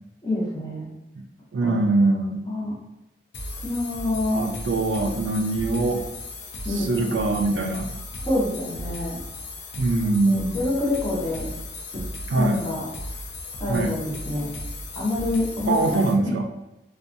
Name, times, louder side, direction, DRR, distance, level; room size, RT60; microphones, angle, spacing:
voice 1, 0.2-0.9 1.6-1.7 2.5-2.7 3.6-4.4 6.6-7.0 8.3-9.2 10.2-11.5 12.4-12.8 13.6-14.5 14.9-16.0, left 2 dB, 20° left, -6 dB, 0.7 m, -26 dB
voice 2, 1.5-2.5 4.3-6.0 6.7-7.9 9.8-10.5 12.3-12.6 13.7-13.9 15.7-16.5, right 2 dB, 75° right, 3 dB, 0.3 m, -23 dB
sound 1, 3.3-16.1, left 1 dB, 70° left, 0.4 m, -36 dB
2.6 x 2.3 x 2.5 m, 0.96 s
head